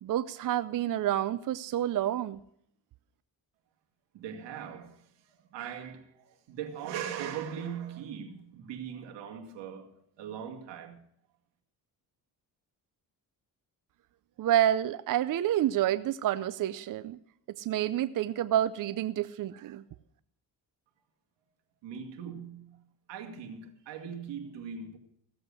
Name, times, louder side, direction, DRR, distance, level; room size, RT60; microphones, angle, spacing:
voice 1, 0.0-2.4 14.4-17.2 17.6-19.8, right 12 dB, 50° right, 0.6 m, -28 dB
voice 2, 4.1-11.0 21.8-22.8 23.1-25.0, right 8 dB, 85° right, 2.2 m, -40 dB
16.0 x 7.9 x 6.3 m
cardioid pair, 105°, 42 cm